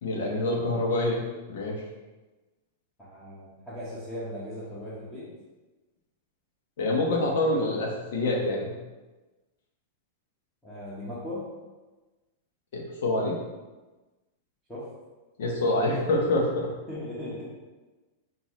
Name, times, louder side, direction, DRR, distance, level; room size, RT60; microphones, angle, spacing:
voice 1, 0.0-1.2 1.5-1.8 6.8-8.7 12.7-13.4 15.4-16.7, left 1 dB, 75° left, -1 dB, 1.0 m, -26 dB
voice 2, 3.0-5.2 10.6-11.4 14.7-14.8 15.6-16.1 16.9-17.4, left 1 dB, 10° left, -11 dB, 1.1 m, -38 dB
5.5 x 2.7 x 3.1 m, 1.2 s
supercardioid pair, 145°, 0 cm